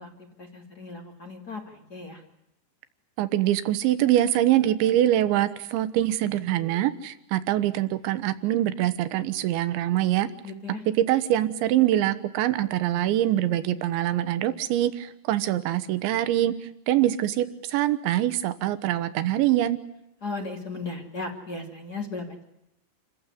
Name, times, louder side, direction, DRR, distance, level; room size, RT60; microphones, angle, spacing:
voice 1, 0.0-2.2 10.4-10.8 20.2-22.5, left 3 dB, 25° left, 3 dB, 2.3 m, -36 dB
voice 2, 3.2-10.3 11.0-16.5 16.9-19.8, right 13 dB, 80° right, 13 dB, 3.5 m, -24 dB
28.5 x 15.0 x 9.8 m, 0.87 s
omnidirectional pair, 5.3 m